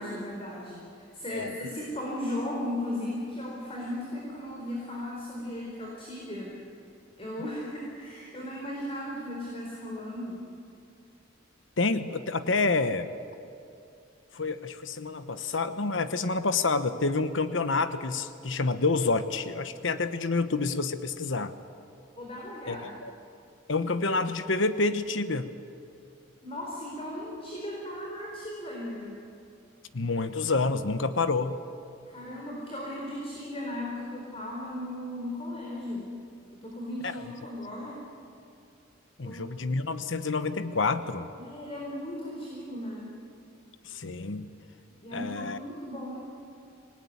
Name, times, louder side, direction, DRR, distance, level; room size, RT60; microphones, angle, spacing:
voice 1, 0.0-6.5 7.2-10.4 22.1-22.9 26.4-29.1 32.1-36.1 36.5-38.0 39.2-39.5 41.4-43.1 45.0-46.3, left 1 dB, 30° left, -3 dB, 4.4 m, -36 dB
voice 2, 11.8-13.1 14.3-21.5 22.7-23.1 23.7-25.5 29.9-31.6 37.0-37.2 39.2-41.3 43.8-44.5 45.1-45.6, left 3 dB, 75° left, 11 dB, 1.1 m, -28 dB
26.0 x 19.0 x 9.6 m, 2.6 s
head